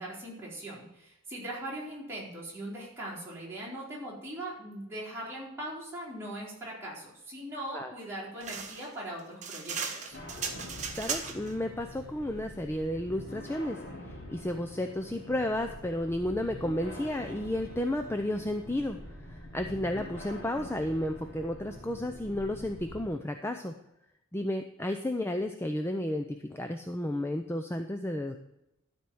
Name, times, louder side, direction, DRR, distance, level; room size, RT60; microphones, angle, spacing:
voice 1, 0.0-10.2, right 1 dB, 10° right, -7 dB, 4.1 m, -40 dB
sound 1, 8.4-11.5, right 6 dB, 35° right, 1.3 m, -36 dB
sound 2, 10.1-23.0, left 1 dB, 50° left, 2.6 m, -45 dB
voice 2, 10.9-19.0 19.3-23.7 24.3-28.4, left 1 dB, 10° left, 6 dB, 0.5 m, -32 dB
12.5 x 4.4 x 7.8 m, 0.86 s
head